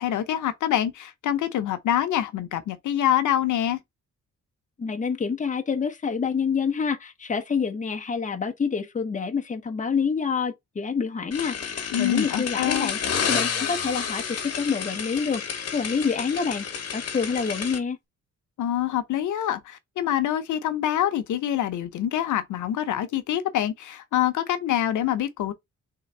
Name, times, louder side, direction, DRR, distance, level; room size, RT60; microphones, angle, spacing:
voice 1, 0.0-3.8 11.9-12.9 18.6-25.5, left 11 dB, 85° left, 0.7 m, -25 dB
voice 2, 4.8-13.0 13.3-16.7 16.9-18.0, left 5 dB, 25° left, 0.9 m, -27 dB
sound 1, 11.3-17.8, left 7 dB, 55° left, 1.2 m, -30 dB
3.8 x 3.3 x 4.2 m
wide cardioid pair, 160°, 30 cm